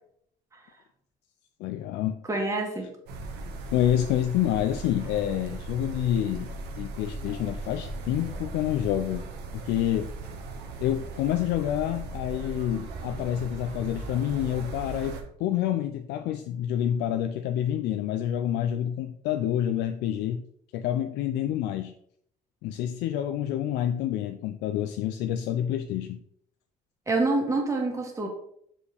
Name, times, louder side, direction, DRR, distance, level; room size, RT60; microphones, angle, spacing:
voice 1, 1.6-2.2 3.7-6.5 6.8-9.3 9.5-10.1 10.8-20.4 20.7-21.9 22.6-26.2, left 11 dB, 85° left, 8 dB, 0.4 m, -28 dB
voice 2, 2.3-2.9 27.1-28.3, right 2 dB, 20° right, 1 dB, 1.7 m, -26 dB
sound 1, 3.1-15.2, right 3 dB, 85° right, 1.1 m, -38 dB
7.2 x 4.5 x 3.4 m, 0.69 s
cardioid pair, 110°, 17 cm